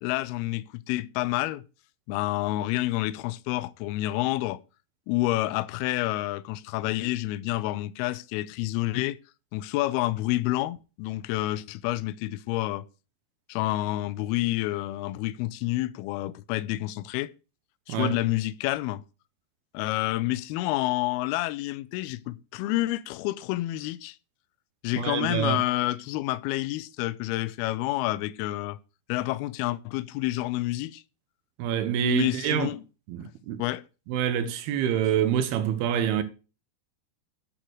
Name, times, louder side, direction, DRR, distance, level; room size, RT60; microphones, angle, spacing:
voice 1, 0.0-1.6 2.1-4.6 5.1-9.2 9.5-12.9 13.5-17.3 17.9-19.0 19.7-24.2 24.8-28.8 29.1-31.0 32.0-32.8 33.6-33.8, left 17 dB, 85° left, 2.2 m, -29 dB
voice 2, 24.9-25.6 31.6-32.7 33.1-33.6 34.1-36.2, right 9 dB, 75° right, 2.5 m, -26 dB
10.5 x 4.6 x 6.3 m
omnidirectional pair, 5.1 m